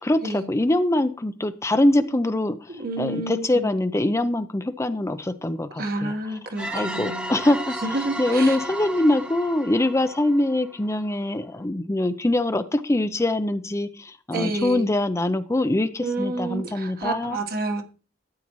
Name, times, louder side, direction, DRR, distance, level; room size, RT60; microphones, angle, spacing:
voice 1, 0.0-2.7 3.0-6.4 6.7-7.7 8.2-17.4, left 1 dB, 15° left, 0.5 m, -23 dB
voice 2, 2.7-3.7 5.8-7.3 7.8-8.6 14.3-14.9 16.0-17.8, right 2 dB, 55° right, 1.4 m, -29 dB
sound 1, 6.6-11.1, right 1 dB, 5° right, 0.9 m, -34 dB
13.5 x 8.5 x 3.1 m
head